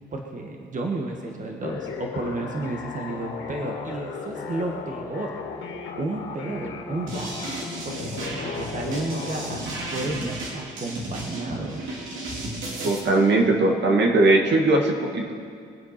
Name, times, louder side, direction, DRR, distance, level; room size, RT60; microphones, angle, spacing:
voice 1, 0.1-5.3 6.0-7.3 7.8-9.6 9.9-11.8, right 2 dB, 40° right, 2 dB, 1.6 m, -32 dB
sound 1, 1.6-9.6, left 5 dB, 75° left, 2.0 m, -35 dB
sound 2, 7.1-13.0, right 1 dB, 80° right, 3.1 m, -34 dB
voice 2, 12.8-15.3, right 2 dB, 60° right, 2 dB, 1.9 m, -19 dB
23.0 x 8.0 x 5.9 m, 2.3 s
cardioid pair, 90°, 20 cm